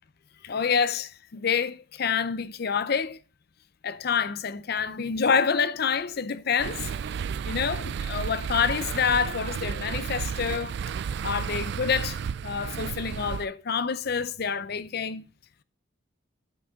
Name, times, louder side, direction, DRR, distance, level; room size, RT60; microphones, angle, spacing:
voice 1, 0.4-3.2 3.8-6.9 7.5-10.8 11.2-15.3, left 6 dB, 55° left, 0.6 m, -27 dB
sound 1, 6.6-13.5, right 7 dB, 60° right, 0.3 m, -32 dB
9.3 x 5.2 x 5.0 m
head